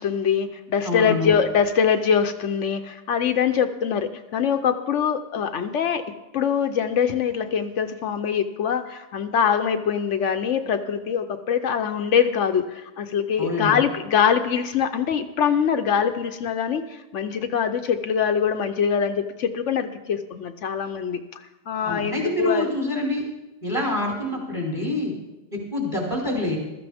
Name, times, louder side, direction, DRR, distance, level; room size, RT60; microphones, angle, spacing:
voice 1, 0.0-6.0 6.3-21.2 21.7-22.7, left 7 dB, 80° left, 7 dB, 1.1 m, -23 dB
voice 2, 0.8-1.3 13.4-13.8 21.8-23.2 23.6-25.1 25.5-26.6, left 1 dB, 25° right, -3 dB, 2.9 m, -26 dB
15.5 x 13.5 x 3.5 m, 1.0 s
omnidirectional pair, 1.2 m